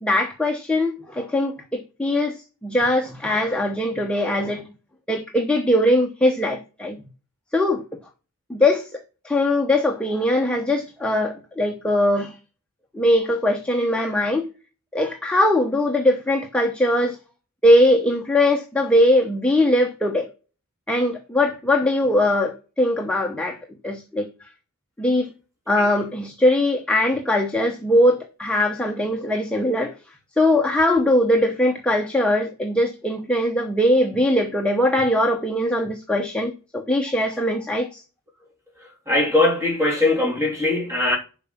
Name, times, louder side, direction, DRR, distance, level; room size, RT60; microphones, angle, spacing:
voice 1, 0.0-4.7 5.1-7.0 7.5-7.8 8.5-12.3 12.9-14.5 14.9-17.2 17.6-20.3 20.9-23.6 23.8-24.3 25.0-25.3 25.7-29.9 30.4-38.0, left 1 dB, 5° left, 0.9 m, -21 dB
voice 2, 38.8-41.2, left 2 dB, 15° right, 2.7 m, -21 dB
7.3 x 5.2 x 5.9 m
head